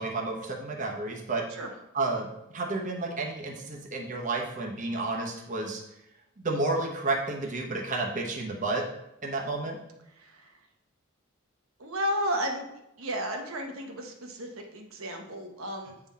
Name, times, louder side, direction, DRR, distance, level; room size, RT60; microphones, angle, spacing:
voice 1, 0.0-1.4 1.9-2.3 2.5-5.8 6.4-8.8 9.2-9.8, right 2 dB, 35° right, -1 dB, 0.9 m, -31 dB
voice 2, 11.8-12.7 13.0-15.9, equal, 70° right, 3 dB, 0.9 m, -33 dB
8.6 x 3.9 x 4.2 m, 0.85 s
head